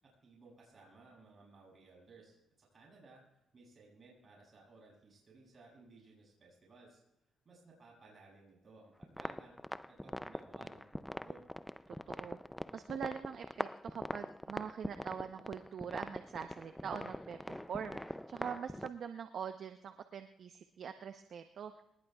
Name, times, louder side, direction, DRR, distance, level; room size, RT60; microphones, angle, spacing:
voice 1, 0.0-3.2 3.5-7.0 7.4-9.6 9.9-11.4, right 3 dB, 40° right, -3 dB, 7.8 m, -59 dB
sound 1, 9.0-18.9, left 1 dB, 5° left, 0.5 m, -43 dB
voice 2, 12.1-12.4 12.7-21.8, right 7 dB, 60° right, 7 dB, 0.9 m, -43 dB
22.5 x 20.0 x 2.4 m, 0.84 s
cardioid pair, 90°, 0 cm